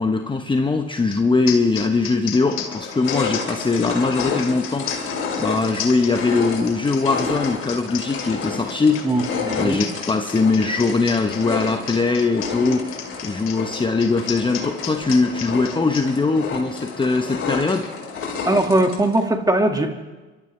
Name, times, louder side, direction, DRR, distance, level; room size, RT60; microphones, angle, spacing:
voice 1, 0.0-17.9, left 3 dB, 15° left, 5 dB, 1.0 m, -21 dB
sound 1, 1.1-1.2 1.5-16.1, left 9 dB, 60° left, 2.2 m, -33 dB
sound 2, 1.8-1.9 2.4-19.2, left 5 dB, 45° left, 4.5 m, -30 dB
voice 2, 9.0-9.8 18.5-19.9, right 1 dB, 10° right, 4 dB, 2.0 m, -20 dB
29.0 x 12.5 x 3.4 m, 1.2 s
supercardioid pair, 75°, 30 cm